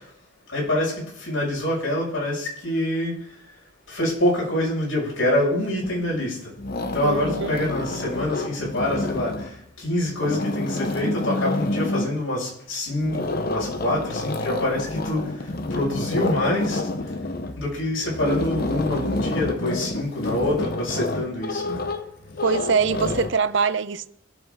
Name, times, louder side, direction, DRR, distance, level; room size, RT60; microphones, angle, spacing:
voice 1, 0.5-3.2 3.9-6.5 6.9-15.3 15.7-16.8 17.6-21.8, left 1 dB, 85° left, 6.4 m, -25 dB
sound 1, 5.8-6.3 6.6-9.6 10.1-12.2 13.0-23.3, left 2 dB, 50° left, 0.9 m, -29 dB
voice 2, 7.0-7.6 22.4-24.1, right 5 dB, 65° right, 0.6 m, -23 dB
23.5 x 8.0 x 3.8 m
head